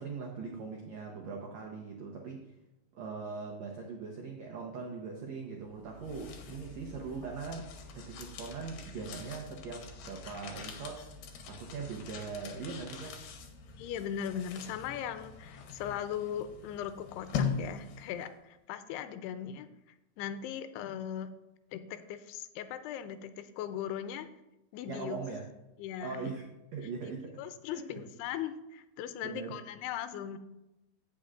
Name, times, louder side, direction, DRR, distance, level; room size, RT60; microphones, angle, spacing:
voice 1, 0.0-2.5 2.9-7.7 7.9-11.0 11.5-13.2 24.9-25.4 26.0-26.4 26.7-27.3 27.7-28.0 29.2-29.6, right 5 dB, 80° right, 0 dB, 1.5 m, -41 dB
sound 1, 5.7-18.3, left 6 dB, 70° left, 2.6 m, -42 dB
voice 2, 13.8-19.7 20.2-21.3 21.7-24.3 24.7-25.2 25.8-26.3 27.4-30.4, left 9 dB, 85° left, 10 dB, 2.7 m, -39 dB
16.5 x 6.0 x 2.5 m, 0.95 s
omnidirectional pair, 4.6 m